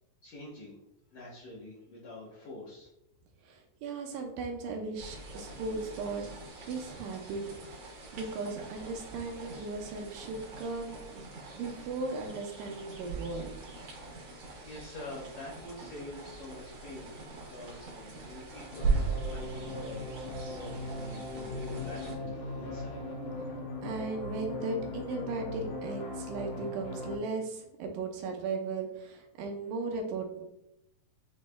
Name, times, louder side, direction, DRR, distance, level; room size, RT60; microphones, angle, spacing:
voice 1, 0.2-0.8 1.1-2.9 14.3-23.0, left 1 dB, 65° left, -8 dB, 2.1 m, -46 dB
voice 2, 3.4-6.2 6.6-7.4 8.1-11.3 11.5-13.5 23.8-30.4, right 3 dB, 80° right, 2 dB, 2.3 m, -37 dB
sound 1, 5.0-22.2, right 4 dB, 60° right, 1.9 m, -40 dB
sound 2, 18.7-27.2, left 2 dB, 80° left, 2.4 m, -39 dB
6.2 x 3.1 x 2.2 m, 0.82 s
omnidirectional pair, 4.0 m